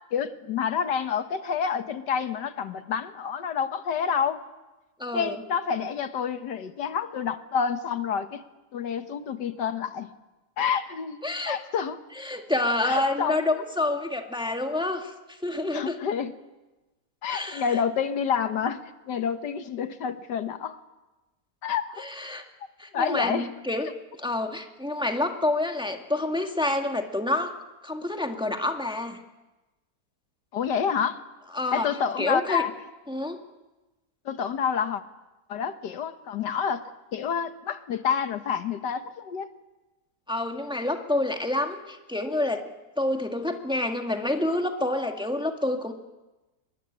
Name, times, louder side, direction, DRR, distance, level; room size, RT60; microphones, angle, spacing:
voice 1, 0.1-4.4 5.1-8.4 8.7-10.1 10.6-12.0 12.8-13.4 15.7-16.3 17.2-20.8 21.6-22.0 22.9-23.5 30.5-31.2 31.7-32.7 34.3-35.0 35.5-36.8 37.1-39.5, left 7 dB, 90° left, 9 dB, 1.9 m, -28 dB
voice 2, 5.0-5.4 11.2-11.6 12.2-16.0 17.3-17.8 22.0-22.4 22.8-23.9 24.2-27.6 27.8-29.2 31.5-31.9 32.2-32.6 33.1-33.4 40.3-42.6 43.0-45.9, left 2 dB, 5° right, 4 dB, 1.7 m, -28 dB
23.5 x 21.5 x 9.9 m, 1.1 s
omnidirectional pair, 1.8 m